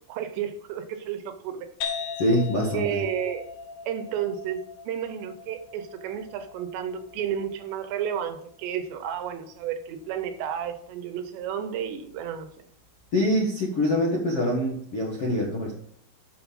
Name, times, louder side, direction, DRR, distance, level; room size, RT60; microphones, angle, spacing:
voice 1, 0.1-1.7 2.7-3.5 3.9-12.5, right 9 dB, 75° right, 9 dB, 2.9 m, -32 dB
sound 1, 1.8-9.2, left 6 dB, 70° left, 4.0 m, -39 dB
voice 2, 2.2-3.0 13.1-15.7, left 1 dB, 55° left, -3 dB, 1.6 m, -24 dB
11.5 x 6.7 x 5.3 m, 0.63 s
omnidirectional pair, 5.4 m